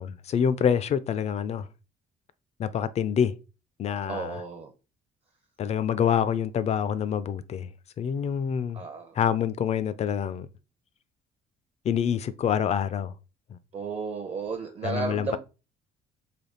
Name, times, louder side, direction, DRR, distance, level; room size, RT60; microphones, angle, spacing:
voice 1, 0.0-1.7 2.6-3.3 3.8-4.4 5.6-7.7 8.0-8.8 9.2-10.5 11.8-13.1 13.5-13.6 14.8-15.4, left 8 dB, 40° left, 0.4 m, -26 dB
voice 2, 4.1-4.7 8.7-9.2 13.7-15.4, right 4 dB, 35° right, 0.6 m, -33 dB
3.4 x 2.3 x 3.8 m
cardioid pair, 110°, 17 cm